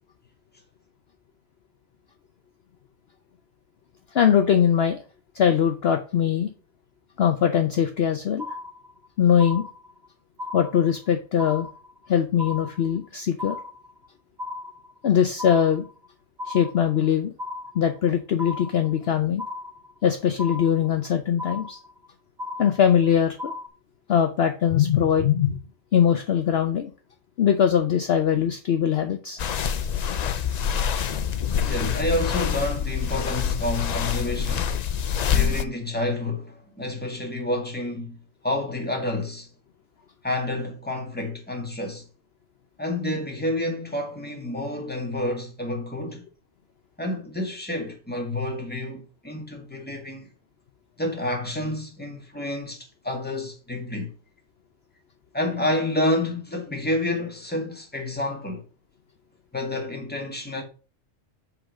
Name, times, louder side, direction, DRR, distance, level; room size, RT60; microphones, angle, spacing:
voice 1, 4.1-5.0 5.3-6.5 7.2-8.5 9.2-9.6 10.5-11.7 12.1-13.6 15.0-15.8 16.5-17.3 17.7-19.4 20.0-21.8 22.6-23.5 24.1-25.6 25.9-26.9 27.4-29.4, left 8 dB, 55° left, 0.9 m, -21 dB
sound 1, 8.4-9.1 9.4-10.1 10.4-11.1 11.4-12.1 12.4-13.1 13.4-14.1 14.4-15.1 15.4-16.1 16.4-17.1 17.4-18.1 18.4-19.1 19.4-20.1 20.4-21.1 21.4-22.1 22.4-23.1 23.4-23.7, left 3 dB, 35° right, 1.9 m, -36 dB
sound 2, 29.4-35.6, left 8 dB, 80° left, 0.3 m, -26 dB
voice 2, 31.6-34.8 35.2-39.5 40.2-42.1 42.8-46.2 47.0-50.3 51.0-54.1 55.3-58.6 59.5-60.6, left 1 dB, 5° left, 1.7 m, -29 dB
7.9 x 3.8 x 6.2 m
omnidirectional pair, 1.3 m